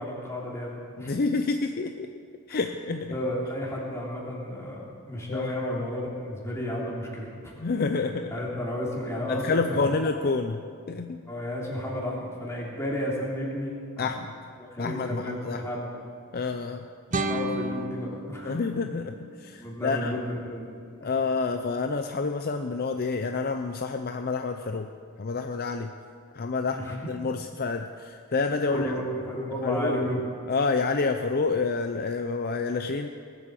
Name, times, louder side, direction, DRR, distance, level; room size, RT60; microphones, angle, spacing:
voice 1, 0.0-1.1 2.5-2.6 2.9-4.8 5.1-7.5 8.3-9.9 10.2-10.3 11.3-14.1 14.6-15.9 17.1-18.5 19.6-21.1 26.7-26.9 28.7-30.2, equal, 15° left, -5 dB, 3.2 m, -32 dB
voice 2, 1.0-2.1 2.5-3.2 5.3-5.5 7.6-8.3 9.3-11.2 14.0-14.3 14.8-15.6 16.3-16.8 18.4-20.2 21.0-24.9 25.2-25.9 26.3-28.9 29.5-30.0 30.5-33.1, left 4 dB, 45° left, 6 dB, 0.5 m, -28 dB
sound 1, 17.1-20.1, right 1 dB, 35° right, 0.9 m, -34 dB
19.5 x 8.5 x 7.5 m, 2.3 s
head